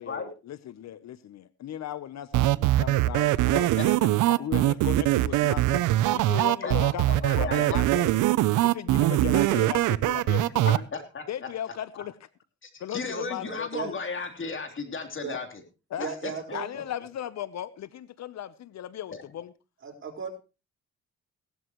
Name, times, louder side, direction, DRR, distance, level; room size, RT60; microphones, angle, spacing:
voice 1, 0.0-4.0 4.4-5.9 6.1-8.1 8.6-10.8 11.3-12.1 12.8-13.7 15.3-15.4 15.9-16.1 16.5-19.5, left 11 dB, 60° left, 0.8 m, -37 dB
sound 1, 2.3-10.8, right 15 dB, 90° right, 0.7 m, -22 dB
voice 2, 3.4-3.9 4.3-4.4 6.6-8.1 10.9-11.2 11.9-12.0 12.6-15.6 16.0-16.8 19.1-19.2, left 4 dB, 40° left, 3.4 m, -35 dB
voice 3, 13.4-13.9 15.2-15.4 16.0-16.7 19.8-20.3, right 6 dB, 40° right, 4.8 m, -36 dB
17.5 x 12.5 x 3.1 m
cardioid pair, 90°, 30 cm